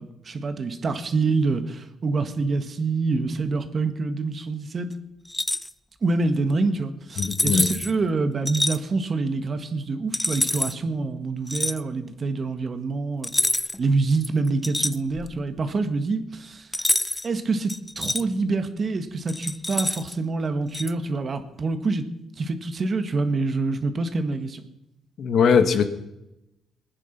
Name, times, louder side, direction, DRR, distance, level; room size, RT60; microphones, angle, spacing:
voice 1, 0.0-4.9 6.0-13.3 13.8-16.8 17.2-22.0 22.4-24.6, right 3 dB, 40° right, 8 dB, 1.6 m, -26 dB
sound 1, 5.3-5.7 7.2-7.9 8.5-8.8 10.1-10.7 11.5-11.8 13.2-13.9 14.2-15.4 16.7-17.3 17.7-18.2 19.3-20.1 20.7-20.9, left 1 dB, 10° left, 0.5 m, -26 dB
voice 2, 7.2-7.7 25.2-25.8, left 6 dB, 60° left, 9 dB, 1.4 m, -20 dB
20.5 x 9.9 x 6.0 m, 0.92 s
cardioid pair, 90°, 0 cm